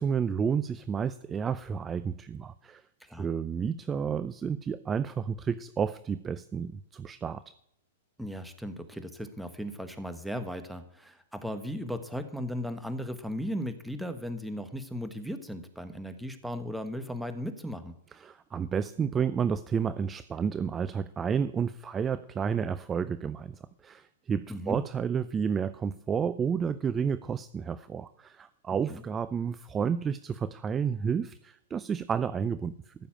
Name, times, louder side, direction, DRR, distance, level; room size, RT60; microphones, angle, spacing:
voice 1, 0.0-2.8 3.2-7.4 18.1-23.5 23.8-32.9, right 7 dB, 20° right, 15 dB, 0.5 m, -31 dB
voice 2, 8.2-17.9 24.5-24.8 28.9-29.0, equal, ahead, 8 dB, 1.4 m, -36 dB
14.5 x 6.8 x 8.9 m, 0.74 s
hypercardioid pair, 135°, 0 cm